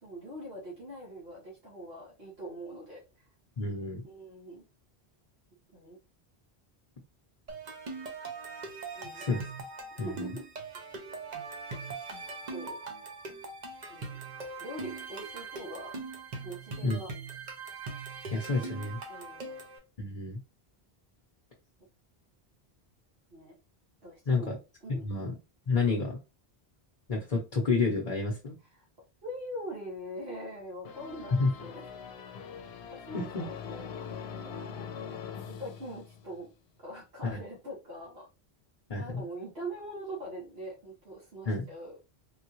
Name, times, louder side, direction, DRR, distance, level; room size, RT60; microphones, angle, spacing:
voice 1, 0.0-3.0 4.0-4.6 5.7-6.0 8.9-9.3 9.9-10.4 12.5-12.8 13.9-14.2 14.6-15.9 16.4-17.1 19.1-19.6 23.3-23.5 24.0-24.6 24.8-25.1 28.7-28.8 29.2-31.9 32.9-34.9 35.6-36.5 36.8-38.3 38.9-42.0, right 1 dB, 75° right, -5 dB, 1.5 m, -43 dB
voice 2, 3.6-4.0 9.1-9.4 10.0-10.3 16.8-17.0 18.3-19.0 20.0-20.4 24.3-24.6 25.0-25.3 25.7-26.2 27.1-28.5 31.4-31.5 33.1-33.4 37.2-37.4 38.9-39.2 41.5-41.7, left 3 dB, 40° left, -2 dB, 0.9 m, -29 dB
sound 1, 7.5-19.8, right 3 dB, 45° right, 0.8 m, -41 dB
sound 2, 30.8-36.5, left 7 dB, 90° left, 0.8 m, -42 dB
3.6 x 2.3 x 3.0 m, 0.28 s
omnidirectional pair, 1.0 m